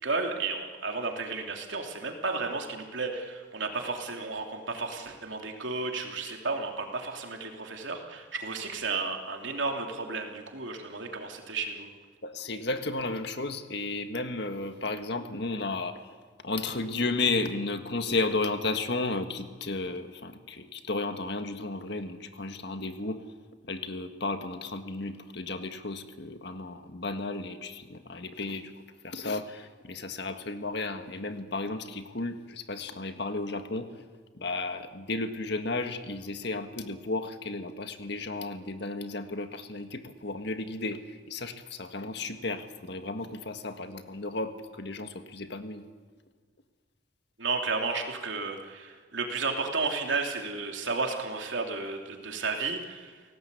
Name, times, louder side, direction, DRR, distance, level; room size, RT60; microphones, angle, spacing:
voice 1, 0.0-11.9 47.4-53.2, right 4 dB, 70° right, 2 dB, 3.2 m, -33 dB
voice 2, 12.2-16.0 16.4-23.2 23.6-28.7 29.0-33.9 34.4-45.8, left 3 dB, 55° left, 7 dB, 1.7 m, -33 dB
29.5 x 18.0 x 8.4 m, 1.5 s
head